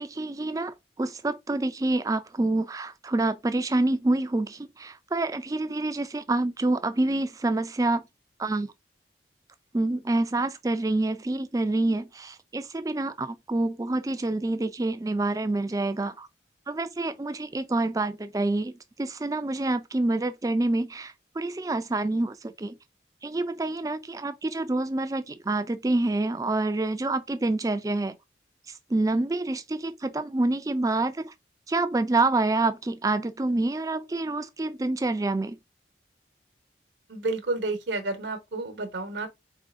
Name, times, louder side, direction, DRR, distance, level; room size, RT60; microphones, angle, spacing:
voice 1, 0.0-8.0 8.4-8.7 9.7-16.3 16.7-18.7 19.0-22.8 23.2-28.2 28.9-31.3 31.7-35.6, right 2 dB, 20° right, 0.3 m, -27 dB
voice 2, 37.1-39.3, right 2 dB, 80° right, 1.0 m, -30 dB
4.1 x 3.7 x 2.5 m
head